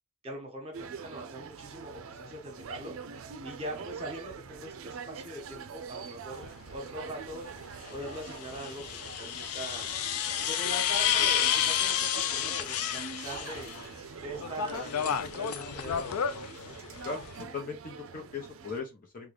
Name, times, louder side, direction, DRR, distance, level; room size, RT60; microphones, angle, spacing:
voice 1, 0.2-2.9 3.4-6.4 6.7-7.5 7.9-9.9 10.5-13.7 14.2-16.4, right 1 dB, 25° right, 1.1 m, -42 dB
sound 1, 0.7-18.8, right 5 dB, 60° right, 0.4 m, -45 dB
sound 2, 6.3-6.5 7.9-13.9 14.2-17.4, left 9 dB, 80° left, 0.5 m, -31 dB
voice 2, 17.5-19.3, left 4 dB, 40° left, 0.8 m, -38 dB
3.7 x 2.3 x 3.2 m
head